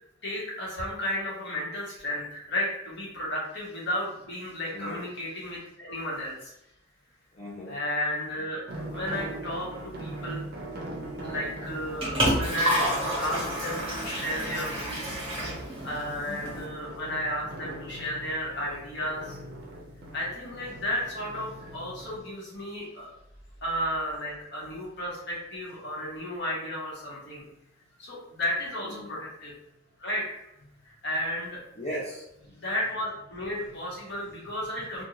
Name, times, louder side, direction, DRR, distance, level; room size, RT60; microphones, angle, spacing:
voice 1, 0.2-6.5 7.7-8.6 8.9-10.5 11.2-12.9 13.2-15.2 15.8-19.4 20.1-23.1 23.6-27.4 28.0-29.5 30.0-30.4 30.8-31.6 32.5-35.0, left 1 dB, 55° left, -5 dB, 1.0 m, -33 dB
voice 2, 7.3-7.7 16.3-16.6 28.8-29.2 31.8-32.6, equal, 30° left, -7 dB, 0.4 m, -38 dB
sound 1, 8.7-22.2, right 1 dB, 50° right, 0.5 m, -41 dB
Liquid, 11.6-16.6, equal, 25° right, 0.9 m, -30 dB
2.5 x 2.2 x 2.9 m, 0.84 s
head